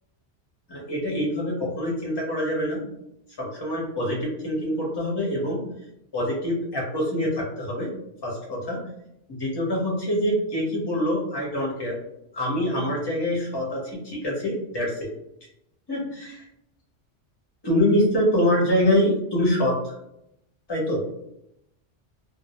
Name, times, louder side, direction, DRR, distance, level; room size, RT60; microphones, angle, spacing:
voice 1, 0.7-2.8 3.4-5.6 6.1-7.9 8.2-8.8 9.3-12.0 12.3-15.1 15.9-16.5 17.6-19.9 20.7-21.0, left 1 dB, 25° left, -3 dB, 0.6 m, -25 dB
2.1 x 2.0 x 2.8 m, 0.80 s
omnidirectional pair, 1.3 m